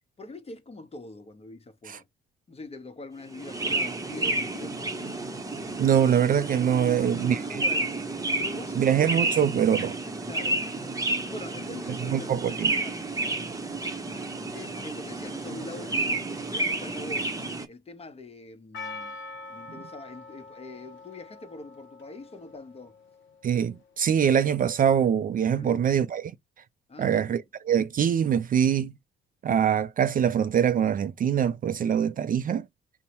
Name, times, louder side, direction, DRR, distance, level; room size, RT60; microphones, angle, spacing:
voice 1, 0.2-2.1 2.5-5.1 6.8-8.0 8.4-9.0 10.3-10.7 11.3-13.0 14.5-17.3 17.7-19.2 19.5-22.9 25.6-25.9 26.9-27.4, left 2 dB, 30° left, 0.9 m, -43 dB
sound 1, 3.3-17.7, right 2 dB, 15° right, 0.8 m, -31 dB
voice 2, 5.8-7.6 8.8-10.0 12.1-12.7 23.4-26.3 27.0-28.9 29.4-32.6, right 8 dB, 45° right, 0.4 m, -24 dB
Percussion, 18.7-23.7, left 3 dB, 70° left, 0.6 m, -44 dB
5.3 x 2.1 x 2.9 m
cardioid pair, 90°, 20 cm